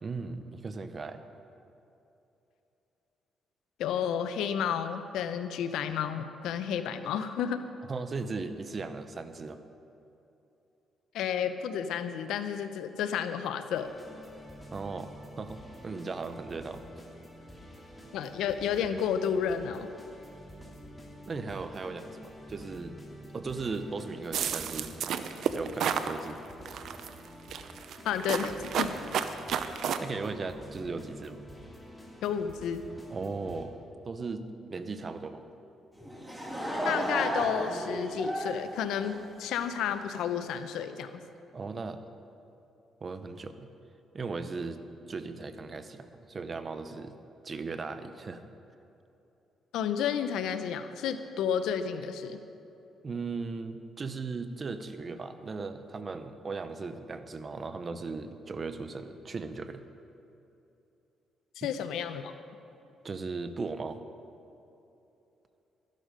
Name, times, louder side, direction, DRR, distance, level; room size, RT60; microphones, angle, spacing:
voice 1, 0.0-1.2 7.9-9.6 14.7-16.8 21.3-23.0 23.3-25.0 25.5-26.4 30.0-31.4 33.1-35.4 41.5-42.0 43.0-43.7 44.1-44.8 45.1-47.1 47.4-48.4 53.0-59.8 61.6-61.7 63.0-64.0, right 4 dB, 35° right, 10 dB, 0.9 m, -37 dB
voice 2, 3.8-7.6 11.1-13.9 18.1-19.9 28.0-28.9 32.2-32.8 36.8-41.2 49.7-52.4 61.6-62.3, left 8 dB, 85° left, 9 dB, 0.8 m, -31 dB
sound 1, 13.7-33.6, equal, 10° left, 2.8 m, -49 dB
sound 2, 24.3-26.1 26.7-27.1 27.5-30.0, right 8 dB, 70° right, 0.7 m, -31 dB
Laughter / Crowd, 36.0-39.7, equal, 10° right, 2.2 m, -33 dB
13.5 x 11.5 x 5.2 m, 2.9 s
cardioid pair, 90°, 0 cm